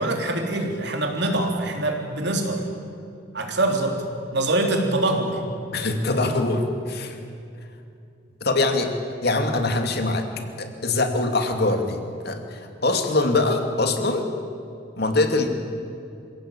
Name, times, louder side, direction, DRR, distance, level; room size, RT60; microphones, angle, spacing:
voice 1, 0.0-2.6 3.3-4.0 4.3-5.4, right 2 dB, 60° right, 2 dB, 3.5 m, -24 dB
voice 2, 5.7-7.2 8.4-8.9 9.2-10.3 10.6-14.3 15.0-15.5, left 2 dB, 55° left, 5 dB, 2.5 m, -23 dB
27.0 x 17.0 x 8.9 m, 2.5 s
head